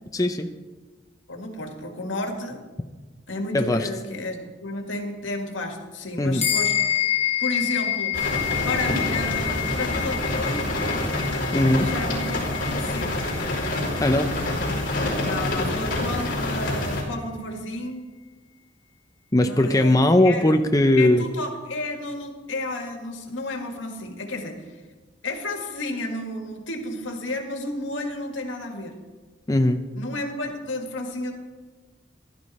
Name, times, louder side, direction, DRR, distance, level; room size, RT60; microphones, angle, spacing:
voice 1, 0.1-0.5 3.5-3.9 6.2-6.5 11.5-11.9 14.0-14.3 19.3-21.2 29.5-29.8, left 1 dB, 20° left, 6 dB, 0.5 m, -19 dB
voice 2, 1.3-2.6 3.3-6.7 7.4-8.2 8.6-10.8 11.8-13.2 15.2-18.0 19.4-20.5 21.0-24.6 25.2-29.0 30.0-31.3, left 2 dB, 80° left, 4 dB, 1.9 m, -32 dB
sound 1, 6.4-16.1, left 11 dB, 35° left, 1.8 m, -29 dB
sound 2, 8.1-17.0, left 1 dB, 50° left, 4.5 m, -27 dB
15.5 x 12.0 x 4.2 m, 1.3 s
head